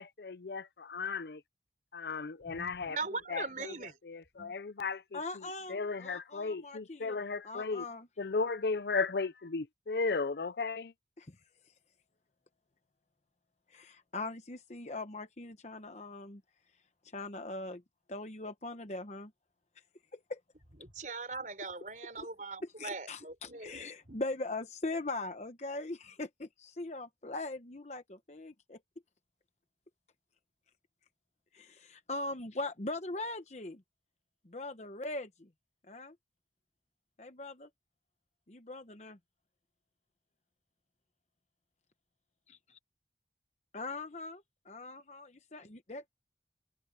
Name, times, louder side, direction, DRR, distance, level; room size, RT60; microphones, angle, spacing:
voice 1, 0.0-1.4 1.9-3.0 3.3-3.7 4.0-5.4 5.7-7.8 8.2-10.9, left 4 dB, 65° left, 0.6 m, -35 dB
voice 2, 2.5-4.0 4.4-4.6 20.8-23.8 24.1-24.2, right 3 dB, 45° right, 4.7 m, -41 dB
voice 3, 5.1-7.2 7.4-8.1 11.2-11.4 11.6-11.7 13.7-16.4 16.7-17.8 18.1-19.3 20.1-20.4 22.6-28.8 31.5-33.8 34.4-35.5 35.8-36.2 37.2-37.7 38.5-39.2 42.5-42.8 43.7-46.1, left 2 dB, 40° left, 1.0 m, -41 dB
head